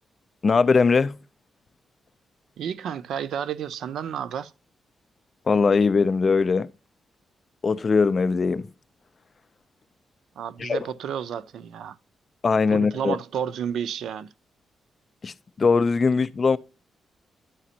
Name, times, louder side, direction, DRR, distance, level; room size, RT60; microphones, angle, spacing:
voice 1, 0.4-1.1 5.5-6.7 7.6-8.7 10.6-10.8 12.4-13.2 15.2-16.6, left 4 dB, 30° left, 0.4 m, -21 dB
voice 2, 2.6-4.5 10.4-12.0 12.7-14.3, right 8 dB, 90° right, 0.4 m, -31 dB
11.0 x 5.0 x 2.7 m
wide cardioid pair, 180°, 0 cm